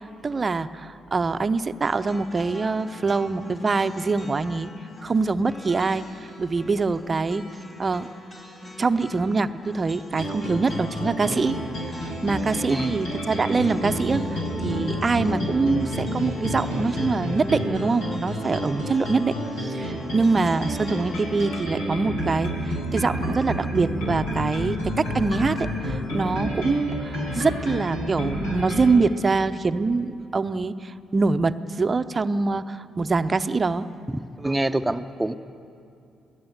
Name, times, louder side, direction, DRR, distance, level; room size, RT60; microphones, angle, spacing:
voice 1, 0.2-4.7 5.0-6.0 6.4-7.5 7.8-8.1 8.8-11.6 12.2-33.9, right 4 dB, 35° right, 11 dB, 0.9 m, -24 dB
sound 1, 1.8-21.6, left 2 dB, 40° left, 4.2 m, -44 dB
sound 2, 10.1-29.0, equal, 80° left, 6.4 m, -30 dB
voice 2, 12.7-13.0 34.1-35.3, right 1 dB, 10° right, 8 dB, 1.0 m, -26 dB
28.5 x 18.0 x 8.2 m, 2.5 s
hypercardioid pair, 45°, 0 cm